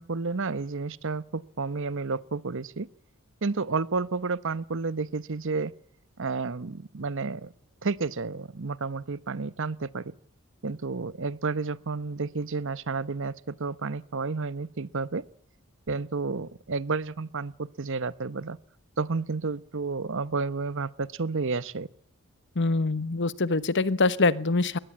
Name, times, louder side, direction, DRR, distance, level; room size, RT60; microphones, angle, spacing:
voice 1, 0.0-2.9 3.4-5.7 6.2-7.5 7.8-10.1 10.6-15.2 15.9-18.6 19.0-21.9, right 4 dB, 60° right, 17 dB, 0.9 m, -31 dB
voice 2, 22.6-24.8, left 3 dB, 55° left, 16 dB, 1.1 m, -24 dB
21.5 x 18.5 x 8.6 m, 0.66 s
head